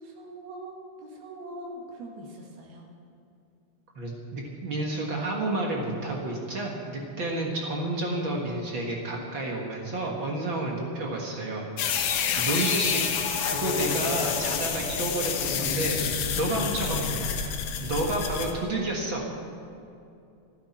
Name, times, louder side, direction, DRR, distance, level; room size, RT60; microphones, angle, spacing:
voice 1, 0.0-2.9, right 1 dB, 85° right, -1 dB, 4.1 m, -42 dB
voice 2, 4.0-13.0 13.4-16.0 16.3-17.3 17.8-19.2, right 2 dB, 45° right, -1 dB, 1.8 m, -30 dB
sound 1, 11.8-18.5, left 7 dB, 85° left, 2.9 m, -28 dB
27.0 x 10.0 x 4.4 m, 2.6 s
omnidirectional pair, 4.2 m